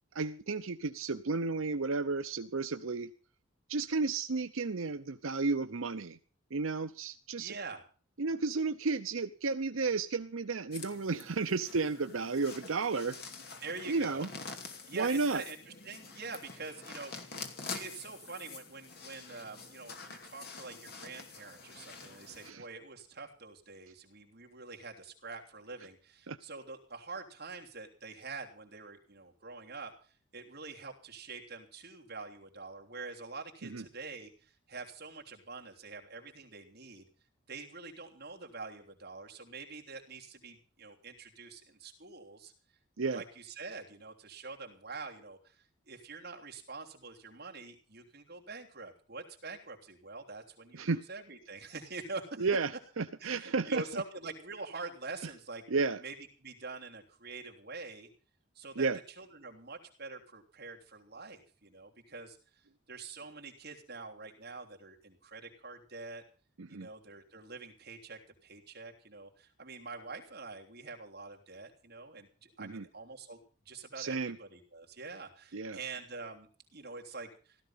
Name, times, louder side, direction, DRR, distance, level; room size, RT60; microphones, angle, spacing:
voice 1, 0.1-3.1 3.7-6.2 6.5-7.5 8.2-13.2 13.9-14.3 14.9-15.4 22.4-22.6 26.3-26.4 33.6-33.8 43.0-43.2 50.7-51.0 52.4-54.0 55.2-55.3 55.7-56.0 58.8-59.0 66.6-66.9 72.6-72.8 74.0-74.4 75.5-75.8, right 4 dB, 85° right, 9 dB, 0.8 m, -33 dB
voice 2, 7.4-7.8 13.6-14.3 14.9-15.6 15.8-17.4 17.7-37.1 37.5-42.5 43.1-52.5 53.2-55.6 56.0-56.1 56.4-58.1 58.5-58.9 59.2-62.4 62.9-66.2 66.7-73.4 73.6-77.6, right 3 dB, 50° right, 1 dB, 3.1 m, -45 dB
sound 1, 10.7-22.5, left 4 dB, 50° left, 2.6 m, -47 dB
16.5 x 13.5 x 5.8 m, 0.39 s
head